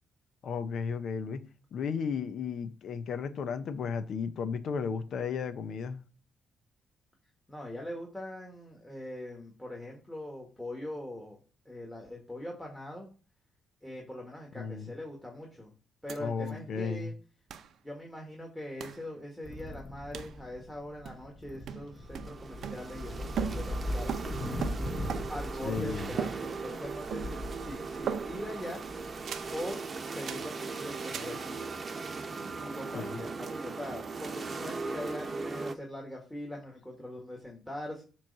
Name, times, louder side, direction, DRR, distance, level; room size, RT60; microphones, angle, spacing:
voice 1, 0.4-1.4 1.7-6.0 14.6-14.9 16.2-17.1 25.6-26.1 32.9-33.1, left 6 dB, 65° left, 0.6 m, -34 dB
voice 2, 7.5-13.1 13.8-15.7 16.0-17.1 17.8-24.1 25.3-28.8 29.5-29.8 30.1-31.6 32.6-38.0, left 1 dB, 10° left, 1.6 m, -42 dB
sound 1, 16.1-16.2 16.5-16.6 17.5-17.7 18.8-19.1 20.1-20.4 21.0-21.4 21.7-23.1 23.4-25.5 26.2-26.8 27.1-27.6 28.1-28.6 29.3-29.6 30.2-30.6 31.1-31.4, right 8 dB, 65° right, 0.6 m, -39 dB
sound 2, 19.4-29.6, left 1 dB, 35° left, 1.2 m, -39 dB
sound 3, 22.0-35.7, right 4 dB, 35° right, 0.8 m, -39 dB
7.3 x 3.1 x 5.4 m
cardioid pair, 90°, 0 cm